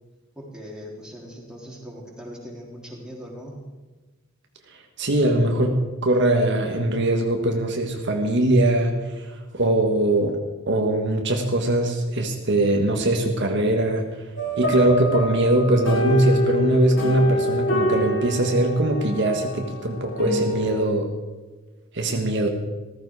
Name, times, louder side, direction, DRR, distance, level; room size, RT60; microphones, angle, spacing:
voice 1, 0.4-3.6 10.3-10.4, equal, 5° right, -3 dB, 3.6 m, -40 dB
voice 2, 5.0-10.4 10.7-14.1 14.6-21.1 21.9-22.5, right 1 dB, 60° right, 3 dB, 1.5 m, -21 dB
sound 1, 14.4-20.8, equal, 70° left, 5.6 m, -26 dB
14.5 x 14.5 x 4.8 m, 1.3 s
head